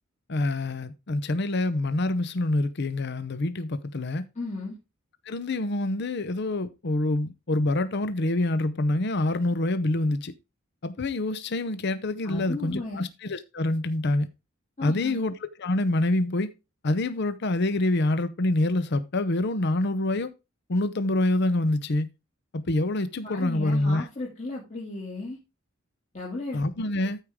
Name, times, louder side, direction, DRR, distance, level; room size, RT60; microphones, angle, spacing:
voice 1, 0.3-4.2 5.3-10.3 10.8-14.3 14.8-15.3 15.6-16.5 16.8-20.3 20.7-22.1 22.5-24.1 26.5-27.2, left 2 dB, 55° left, 0.7 m, -26 dB
voice 2, 4.4-4.8 12.2-13.0 14.8-15.2 23.2-25.4 26.1-26.9, left 2 dB, 35° left, 2.3 m, -35 dB
13.5 x 4.8 x 3.6 m
head